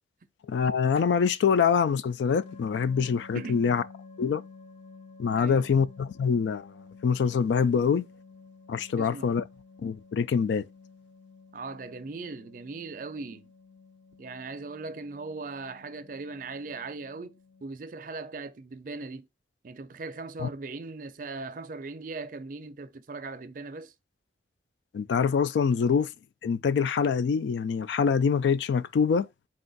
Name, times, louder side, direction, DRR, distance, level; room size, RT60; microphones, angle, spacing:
voice 1, 0.5-3.8 4.2-4.4 5.2-6.7 7.0-8.1 8.7-9.4 9.8-10.7 20.4-20.5 24.9-26.1 26.4-29.3, left 6 dB, 85° left, 0.3 m, -25 dB
sound 1, 2.3-17.6, left 4 dB, 40° left, 0.6 m, -52 dB
voice 2, 3.3-3.7 5.4-5.7 9.0-9.4 11.5-13.5 14.2-19.3 19.6-23.9 25.7-25.8, right 3 dB, 50° right, 0.4 m, -39 dB
4.3 x 2.4 x 3.9 m
head